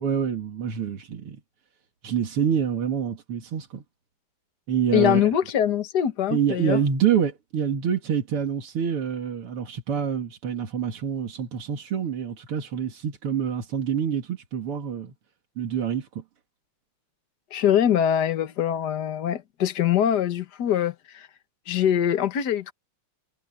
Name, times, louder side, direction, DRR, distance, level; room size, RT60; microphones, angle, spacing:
voice 1, 0.0-1.4 2.0-3.8 4.7-5.3 6.3-15.1 15.6-16.1, right 8 dB, 85° right, 3.0 m, -26 dB
voice 2, 4.9-6.8 17.5-21.3 21.7-22.7, left 10 dB, 50° left, 1.8 m, -23 dB
omnidirectional pair, 2.4 m